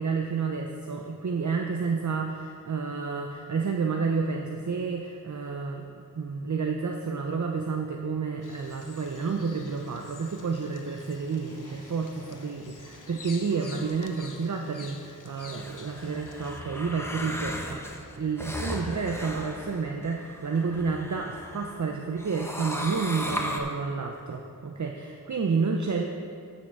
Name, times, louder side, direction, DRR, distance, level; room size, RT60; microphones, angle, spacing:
voice 1, 0.0-17.8 18.2-26.1, right 5 dB, 55° right, 2 dB, 0.7 m, -30 dB
sound 1, 7.5-20.6 20.9-21.4, left 1 dB, 40° left, 2.2 m, -55 dB
Bird vocalization bird call bird song, 8.4-16.6, left 5 dB, 65° left, 0.7 m, -49 dB
sound 2, 15.5-21.8 22.2-23.6, equal, 5° left, 1.1 m, -36 dB
10.5 x 5.6 x 6.8 m, 2.4 s
wide cardioid pair, 55°, 35 cm